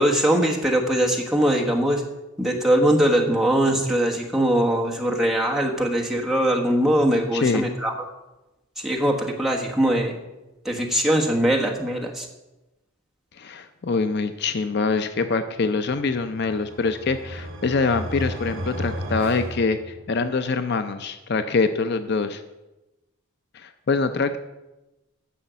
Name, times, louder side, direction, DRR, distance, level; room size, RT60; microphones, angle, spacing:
voice 1, 0.0-2.0 2.4-7.9 8.8-10.1 10.6-12.3, right 1 dB, ahead, -1 dB, 1.3 m, -21 dB
voice 2, 7.3-7.7 13.4-22.4 23.5-24.4, left 4 dB, 50° left, 10 dB, 0.5 m, -24 dB
sound 1, 16.0-20.4, equal, 65° right, 2.4 m, -34 dB
10.0 x 6.4 x 8.1 m, 1.0 s
head